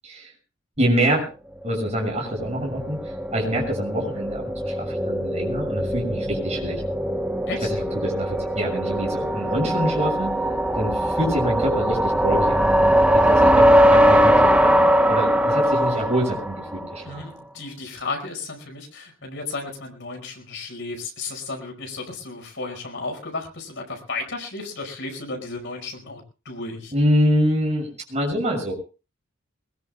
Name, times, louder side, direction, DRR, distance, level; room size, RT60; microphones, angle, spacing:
voice 1, 0.8-1.3 1.6-3.0 3.3-6.8 7.6-10.3 10.7-17.2 26.9-28.7, equal, 35° right, 0 dB, 6.7 m, -25 dB
sound 1, 1.8-17.0, equal, 5° right, 0.9 m, -21 dB
voice 2, 17.0-26.9, left 3 dB, 60° left, 3 dB, 5.3 m, -34 dB
22.0 x 20.5 x 2.3 m, 0.32 s
head